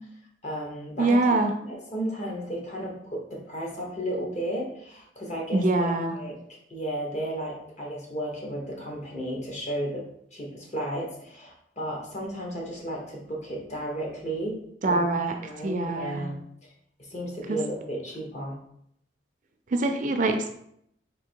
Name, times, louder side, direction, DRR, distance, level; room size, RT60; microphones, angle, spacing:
voice 1, 0.4-6.3 6.7-10.0 10.3-14.6 14.9-15.0 15.4-16.4 17.1-18.6, right 1 dB, 40° left, -2 dB, 1.2 m, -34 dB
voice 2, 1.0-1.5 5.5-6.2 14.8-15.3 15.6-16.3 17.5-17.6 19.7-20.5, right 2 dB, 45° right, 5 dB, 0.4 m, -24 dB
3.7 x 2.7 x 4.5 m, 0.71 s
head